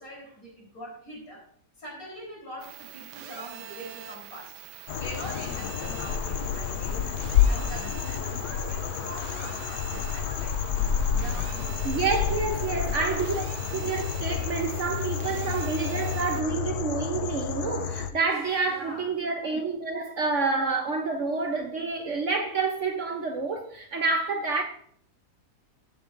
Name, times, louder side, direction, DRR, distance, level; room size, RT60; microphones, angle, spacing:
voice 1, 0.0-1.4 1.8-7.2 7.5-10.6 11.0-13.1 18.6-19.1, equal, 55° left, 4.3 m, -43 dB
sound 1, 2.6-16.4, right 10 dB, 85° right, 1.3 m, -44 dB
sound 2, 4.9-18.1, left 8 dB, 75° left, 1.1 m, -29 dB
voice 2, 11.8-13.4 13.7-24.6, right 4 dB, 55° right, 1.0 m, -28 dB
15.0 x 7.8 x 2.5 m
omnidirectional pair, 1.8 m